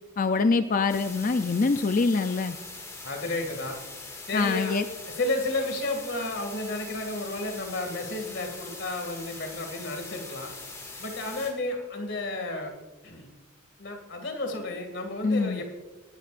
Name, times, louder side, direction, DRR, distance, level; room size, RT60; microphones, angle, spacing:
voice 1, 0.2-2.6 4.3-4.8 15.2-15.6, left 4 dB, 40° left, 9 dB, 0.4 m, -24 dB
sound 1, 0.9-11.5, left 3 dB, 15° left, 2.1 m, -42 dB
voice 2, 3.0-3.8 4.3-4.8 5.0-10.5 11.0-12.7 13.0-13.3 13.8-15.7, left 2 dB, 55° left, 4 dB, 2.4 m, -32 dB
20.5 x 12.0 x 2.6 m, 1.2 s
head